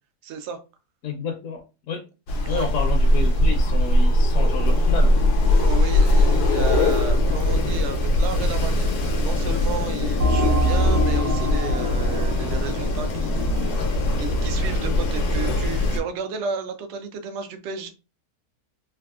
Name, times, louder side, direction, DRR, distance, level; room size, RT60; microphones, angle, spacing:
voice 1, 0.2-0.6 2.5-2.7 5.5-17.9, right 5 dB, 70° right, 7 dB, 0.6 m, -33 dB
voice 2, 1.0-1.6 1.9-2.0 2.5-5.1, left 6 dB, 65° left, 1 dB, 0.9 m, -30 dB
Wind, 2.3-16.0, left 1 dB, 85° left, 1.2 m, -21 dB
sound 1, 10.2-15.5, right 1 dB, 90° right, 1.5 m, -27 dB
3.5 x 2.4 x 2.3 m, 0.30 s
omnidirectional pair, 1.6 m